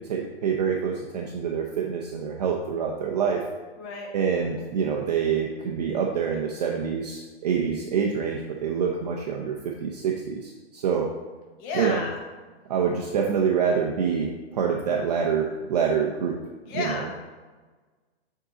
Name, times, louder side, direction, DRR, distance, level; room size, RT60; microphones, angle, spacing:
voice 1, 0.1-3.4 4.1-11.1 11.7-12.0 12.7-16.4 16.7-17.1, right 6 dB, 40° right, 0 dB, 0.6 m, -26 dB
voice 2, 3.8-4.1 11.6-12.2 16.6-17.2, left 3 dB, 20° left, 0 dB, 0.8 m, -32 dB
7.7 x 3.8 x 3.8 m, 1.3 s
hypercardioid pair, 165°, 33 cm